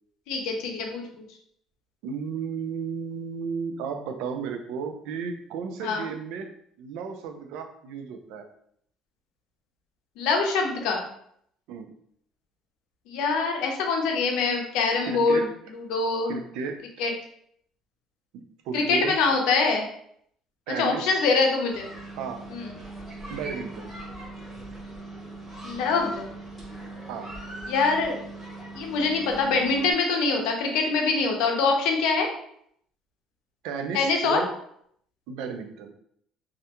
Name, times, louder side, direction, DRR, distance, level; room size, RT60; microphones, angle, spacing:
voice 1, 0.3-1.2 5.8-6.1 10.2-11.0 13.1-15.5 15.9-16.4 17.0-17.1 18.7-19.9 20.8-21.9 22.5-22.7 25.6-26.2 27.7-28.2 28.7-32.3 33.9-34.4, left 4 dB, 85° left, 2 dB, 0.5 m, -24 dB
voice 2, 2.0-6.5 6.8-8.5 11.7-11.9 15.0-15.5 16.3-16.8 18.3-19.2 20.7-21.1 22.2-22.4 23.3-23.9 27.1-27.3 33.6-34.5 35.3-35.9, right 6 dB, 85° right, 6 dB, 0.4 m, -33 dB
sound 1, 21.7-29.9, right 2 dB, 10° right, 0.9 m, -40 dB
2.4 x 2.2 x 2.8 m, 0.68 s
cardioid pair, 135°, 0 cm